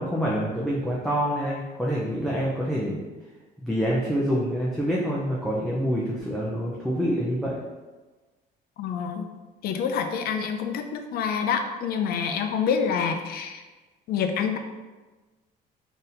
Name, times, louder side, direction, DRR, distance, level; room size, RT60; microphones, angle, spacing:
voice 1, 0.0-3.0 3.6-7.5, equal, ahead, -6 dB, 0.5 m, -26 dB
voice 2, 8.8-9.3 9.6-13.6 14.1-14.6, left 6 dB, 65° left, 6 dB, 0.4 m, -27 dB
4.0 x 2.7 x 2.5 m, 1.2 s
cardioid pair, 110°, 17 cm